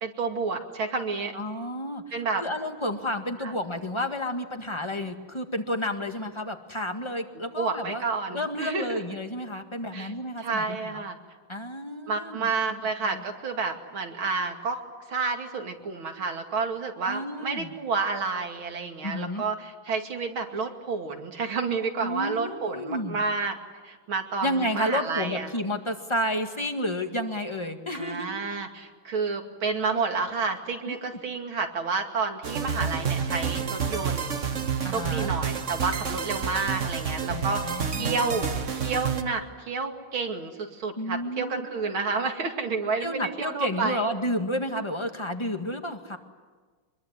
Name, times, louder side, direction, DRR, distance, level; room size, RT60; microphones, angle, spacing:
voice 1, 0.0-1.3 2.1-2.4 3.4-3.5 7.6-9.0 9.9-10.1 10.4-11.2 12.1-14.8 15.1-23.6 23.8-25.5 27.9-34.4 34.9-44.0, right 4 dB, 75° right, 4 dB, 3.2 m, -30 dB
voice 2, 1.3-8.0 8.3-11.0 11.5-13.2 17.0-17.7 19.0-19.4 22.0-23.2 24.4-28.3 30.9-31.0 34.8-35.3 37.3-38.5 41.0-41.7 43.0-46.2, left 1 dB, 15° left, 5 dB, 1.7 m, -31 dB
sound 1, 32.4-39.2, right 6 dB, 40° right, 1.6 m, -29 dB
25.0 x 22.5 x 9.8 m, 1.4 s
omnidirectional pair, 2.2 m